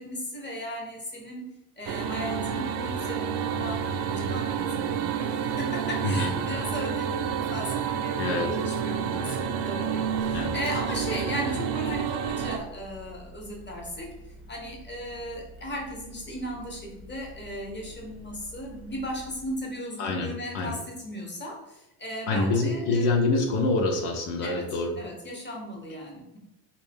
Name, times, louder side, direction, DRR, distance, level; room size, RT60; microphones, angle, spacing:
voice 1, 0.0-1.5 1.8-14.2 14.5-23.1 24.4-24.7 25.0-26.4, equal, 20° left, 0 dB, 1.2 m, -36 dB
sound 1, 1.9-12.6, right 7 dB, 70° right, 0.6 m, -29 dB
voice 2, 8.2-8.5 10.3-10.6 20.0-20.8 22.3-25.0, left 3 dB, 80° left, 3 dB, 0.7 m, -26 dB
sound 2, 8.2-19.7, equal, ahead, 0.7 m, -47 dB
3.7 x 2.3 x 3.5 m, 0.92 s
supercardioid pair, 75°, 49 cm